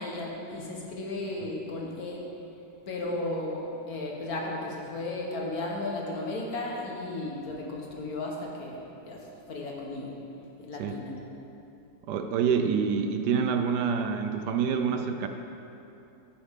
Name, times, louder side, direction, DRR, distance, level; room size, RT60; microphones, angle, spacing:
voice 1, 0.0-2.3 2.9-10.1 10.6-11.2, left 2 dB, 55° left, -1 dB, 1.7 m, -35 dB
voice 2, 12.1-15.3, right 6 dB, 75° right, 7 dB, 1.1 m, -27 dB
10.5 x 9.8 x 3.7 m, 2.8 s
omnidirectional pair, 1.9 m